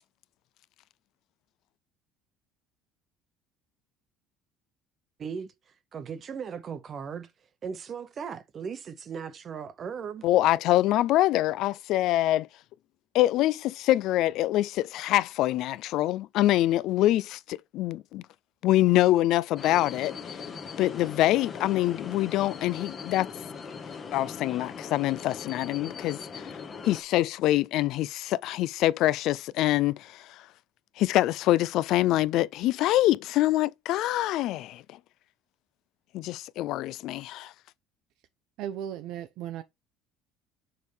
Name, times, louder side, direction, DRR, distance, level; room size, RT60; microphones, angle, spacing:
voice 1, 5.2-5.5 5.9-7.3 7.6-10.2, right 6 dB, 30° right, 0.8 m, -37 dB
voice 2, 10.2-12.5 13.1-18.2 18.6-20.2 20.8-23.3 24.1-26.5 26.8-30.4 31.0-34.8 36.1-37.5, left 15 dB, 60° left, 0.3 m, -25 dB
sound 1, 19.6-27.0, left 5 dB, 30° left, 1.1 m, -40 dB
voice 3, 38.6-39.6, right 10 dB, 65° right, 0.5 m, -36 dB
6.5 x 4.4 x 3.4 m
cardioid pair, 155°, 0 cm